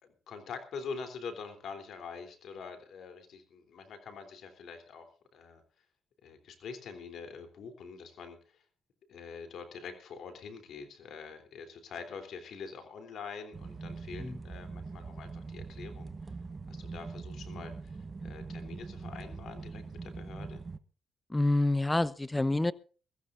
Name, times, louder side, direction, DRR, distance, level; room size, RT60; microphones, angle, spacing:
voice 1, 0.0-5.6 6.2-8.6 9.1-16.3 16.7-20.6, left 5 dB, 70° left, 8 dB, 3.3 m, -45 dB
sound 1, 13.5-20.8, right 4 dB, 30° right, 1.0 m, -43 dB
voice 2, 21.3-22.7, left 2 dB, 10° left, 18 dB, 0.8 m, -27 dB
23.0 x 14.5 x 2.6 m, 0.37 s
cardioid pair, 90°, 0 cm